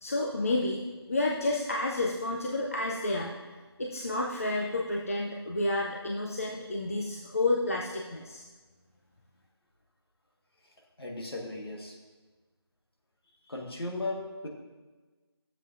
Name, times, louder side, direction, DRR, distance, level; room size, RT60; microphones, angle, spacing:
voice 1, 0.0-0.8 1.1-8.5, left 2 dB, 35° left, -1 dB, 0.5 m, -30 dB
voice 2, 11.0-12.0 13.4-14.5, left 2 dB, 65° left, 0 dB, 1.5 m, -36 dB
12.0 x 7.5 x 2.6 m, 1.3 s
figure-of-eight pair, 165°, 14 cm